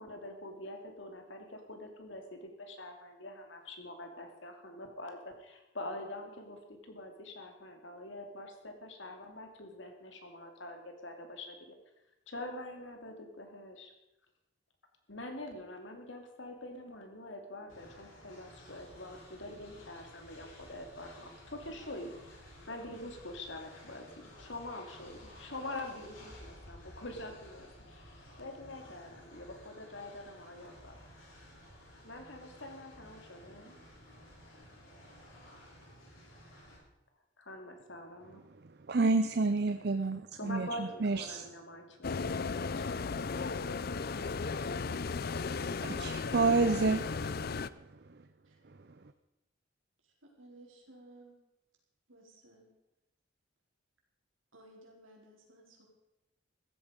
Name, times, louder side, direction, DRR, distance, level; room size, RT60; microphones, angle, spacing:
voice 1, 0.0-11.8 12.3-13.9 15.1-22.1 22.7-24.1 24.4-31.0 32.0-33.8 37.4-38.4 40.3-43.0, left 1 dB, 70° left, 4 dB, 2.7 m, -45 dB
Train, 17.7-36.8, left 1 dB, 90° left, 7.1 m, -54 dB
voice 2, 38.6-41.5 43.4-44.0 44.3-47.1 47.4-47.5 48.1-48.2, right 3 dB, 55° right, 10 dB, 0.6 m, -31 dB
sound 1, 42.0-47.7, left 4 dB, 50° left, 0.5 m, -35 dB
voice 3, 50.2-51.4 52.1-52.7 54.5-55.9, right 1 dB, 85° right, -1 dB, 4.7 m, -57 dB
15.5 x 14.0 x 5.2 m, 0.92 s
head